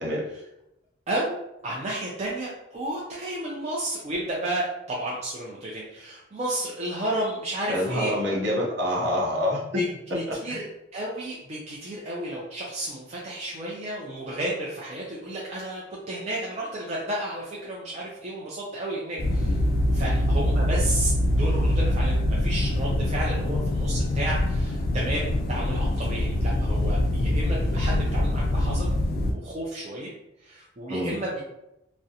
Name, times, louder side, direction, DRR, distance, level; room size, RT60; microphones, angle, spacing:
voice 1, 1.1-1.4 1.6-8.1 9.7-9.8 10.1-10.6 10.9-19.6 19.9-30.1 30.4-31.4, right 1 dB, 35° right, -5 dB, 0.4 m, -32 dB
voice 2, 7.7-9.6 30.9-31.2, left 1 dB, 60° right, -3 dB, 0.8 m, -26 dB
sound 1, 19.2-29.3, left 1 dB, 45° left, 0.3 m, -24 dB
2.4 x 2.1 x 2.7 m, 0.85 s
head